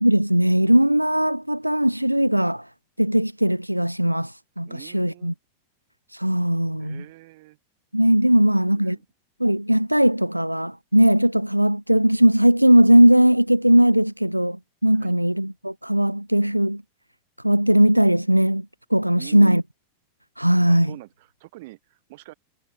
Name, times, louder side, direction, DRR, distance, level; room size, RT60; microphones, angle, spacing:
voice 1, 0.0-2.7 3.0-5.3 6.1-7.0 7.9-9.0 9.4-16.8 17.4-18.7 18.9-19.6 20.4-20.9, equal, 90° right, 0.4 m, -19 dB
voice 2, 4.7-5.4 6.8-7.6 8.3-9.0 14.9-15.2 19.1-19.6 20.7-22.3, right 20 dB, 50° right, 2.6 m, -45 dB
figure-of-eight pair, 90°, 0 cm